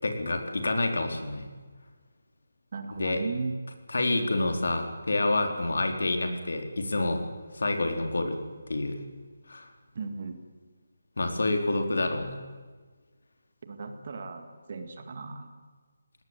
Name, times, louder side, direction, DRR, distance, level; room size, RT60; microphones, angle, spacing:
voice 1, 0.0-1.5 3.0-3.2 3.9-7.2 7.5-8.4 8.7-9.0 9.5-9.7 11.2-12.4, left 2 dB, 65° left, 5 dB, 4.0 m, -28 dB
voice 2, 2.7-3.6 9.9-10.4 13.6-15.5, right 4 dB, 30° right, 7 dB, 2.1 m, -36 dB
20.5 x 18.5 x 9.8 m, 1.4 s
hypercardioid pair, 180°, 0 cm